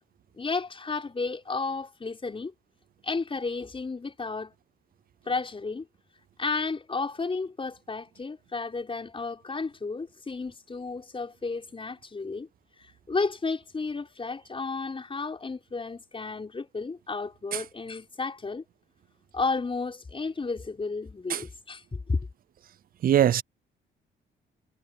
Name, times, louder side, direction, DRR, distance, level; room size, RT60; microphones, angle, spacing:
voice 1, 0.4-2.5 3.0-4.5 5.3-5.9 6.4-12.5 12.8-18.6 19.3-22.3, left 4 dB, 25° left, 5.2 m, -32 dB
voice 2, 23.0-23.4, right 11 dB, 45° right, 0.4 m, -21 dB
cardioid pair, 90°, 20 cm